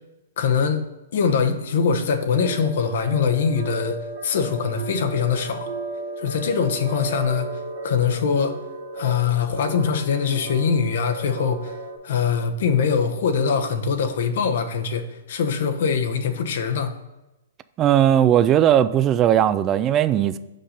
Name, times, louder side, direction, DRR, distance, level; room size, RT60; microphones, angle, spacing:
voice 1, 0.4-0.8 1.1-4.0 4.2-5.7 6.2-8.6 8.9-11.8 12.0-16.9, left 6 dB, 65° left, 0.9 m, -23 dB
sound 1, 2.4-12.0, right 2 dB, 60° right, 1.8 m, -34 dB
voice 2, 17.8-20.4, right 10 dB, 25° right, 0.3 m, -18 dB
5.3 x 5.0 x 5.7 m
hypercardioid pair, 135°, 0 cm